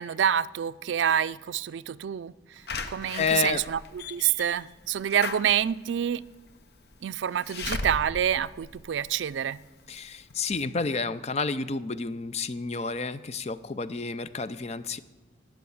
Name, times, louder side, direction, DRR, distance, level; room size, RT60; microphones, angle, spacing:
voice 1, 0.0-2.3 2.9-3.8 4.1-6.2 7.0-9.6, right 9 dB, 85° right, 17 dB, 0.4 m, -27 dB
Slam / Alarm, 2.7-9.5 10.0-10.1 10.3-10.4, left 3 dB, 60° left, 0.9 m, -38 dB
voice 2, 3.1-3.6 9.9-15.0, left 4 dB, 35° left, 14 dB, 0.5 m, -30 dB
16.0 x 9.1 x 7.1 m, 1.2 s
head